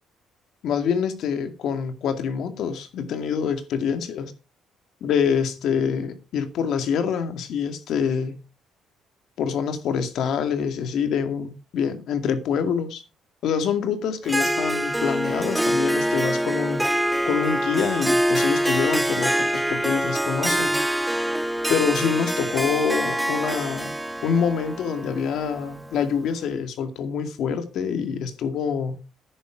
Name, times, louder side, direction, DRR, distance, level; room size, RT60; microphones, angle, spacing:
voice 1, 0.6-4.3 5.0-8.4 9.4-13.0 13.4-16.9 17.3-20.8 21.7-23.9 24.2-29.0, left 7 dB, 70° left, 2.3 m, -26 dB
Harp, 14.2-26.1, equal, 5° right, 0.7 m, -25 dB
10.0 x 9.8 x 4.8 m
cardioid pair, 115°, 0 cm